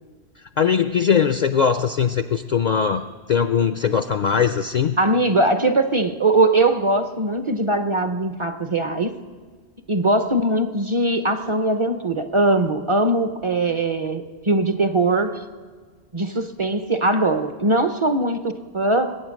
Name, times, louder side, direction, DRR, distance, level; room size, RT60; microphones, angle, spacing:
voice 1, 0.6-3.0 3.3-4.9, left 7 dB, 55° left, 10 dB, 0.5 m, -20 dB
voice 2, 5.0-9.2 9.9-15.4 16.1-19.2, right 2 dB, 35° right, 9 dB, 0.6 m, -21 dB
22.0 x 8.4 x 6.2 m, 1.5 s
omnidirectional pair, 1.1 m